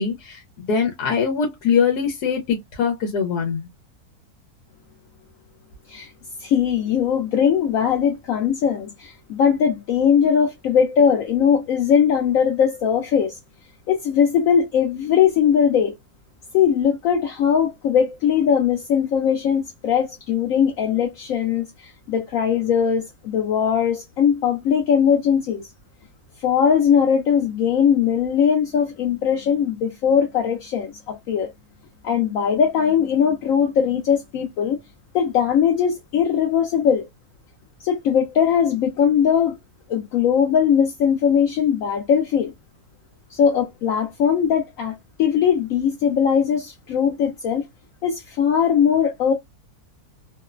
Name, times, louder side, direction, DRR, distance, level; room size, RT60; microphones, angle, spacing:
voice 1, 0.0-3.7, left 6 dB, 85° left, 1.2 m, -22 dB
voice 2, 6.4-13.3 13.9-15.9 16.5-25.6 26.4-31.5 32.0-34.8 35.1-37.1 37.8-39.6 39.9-42.5 43.3-47.7 48.0-49.3, left 7 dB, 70° left, 1.0 m, -20 dB
2.9 x 2.0 x 2.3 m
omnidirectional pair, 1.6 m